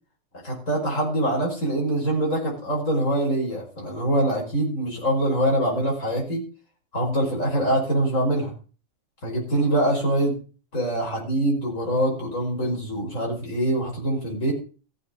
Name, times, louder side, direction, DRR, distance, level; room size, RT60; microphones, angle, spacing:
voice 1, 0.4-6.4 6.9-8.5 9.2-10.4 10.7-14.5, right 1 dB, 70° left, -2 dB, 5.9 m, -24 dB
15.5 x 8.1 x 7.5 m, 0.38 s
omnidirectional pair, 1.4 m